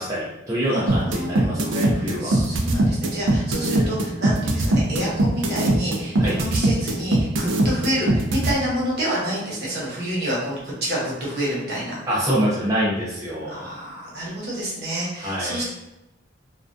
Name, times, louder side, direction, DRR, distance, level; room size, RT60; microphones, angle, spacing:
voice 1, 0.0-2.4 6.2-6.4 12.1-13.7 15.2-15.6, equal, 15° right, -8 dB, 0.5 m, -25 dB
voice 2, 0.7-12.2 13.4-15.6, right 1 dB, 55° right, -6 dB, 0.9 m, -29 dB
sound 1, 0.9-8.5, right 1 dB, 75° right, 0.4 m, -20 dB
2.3 x 2.2 x 2.5 m, 0.96 s
head